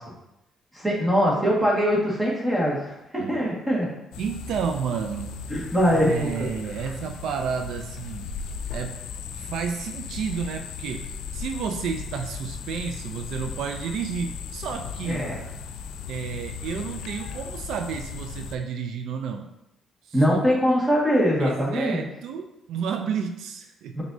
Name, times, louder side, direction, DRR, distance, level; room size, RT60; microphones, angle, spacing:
voice 1, 0.7-3.9 5.5-6.3 15.1-15.3 20.1-22.0 23.9-24.0, equal, 10° right, -4 dB, 1.5 m, -22 dB
sound 1, 4.1-18.6, left 6 dB, 90° left, 0.3 m, -37 dB
voice 2, 4.2-5.3 6.0-8.3 8.7-9.0 9.3-15.2 16.1-19.5 20.0-20.4 21.4-24.0, right 6 dB, 80° right, 5 dB, 0.3 m, -31 dB
5.9 x 2.7 x 2.6 m, 0.89 s
cardioid pair, 90°, 0 cm